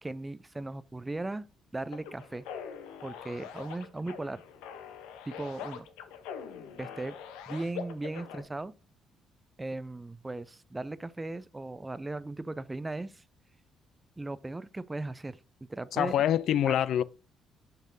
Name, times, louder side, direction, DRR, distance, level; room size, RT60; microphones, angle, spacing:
voice 1, 0.0-1.5 1.7-2.4 3.0-4.4 5.3-5.9 6.8-7.2 7.5-8.7 9.6-13.2 14.2-15.4 15.7-16.1, right 2 dB, 20° right, 0.5 m, -37 dB
sound 1, 1.9-8.4, left 8 dB, 85° left, 0.8 m, -43 dB
voice 2, 15.9-17.0, left 10 dB, 70° left, 0.3 m, -25 dB
7.3 x 5.6 x 2.7 m
supercardioid pair, 60°, 0 cm